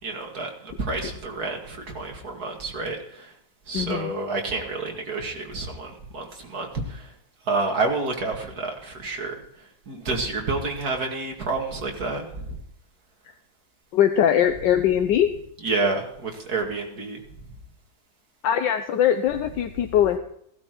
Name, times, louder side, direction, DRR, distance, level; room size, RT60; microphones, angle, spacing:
voice 1, 0.0-3.3 3.7-7.1 7.5-9.3 9.9-12.6 15.6-17.2, right 3 dB, 55° right, 2 dB, 2.7 m, -29 dB
voice 2, 3.7-4.1 13.9-15.3 18.4-20.2, left 10 dB, 75° left, 8 dB, 1.4 m, -21 dB
16.5 x 12.0 x 4.6 m, 0.70 s
omnidirectional pair, 2.0 m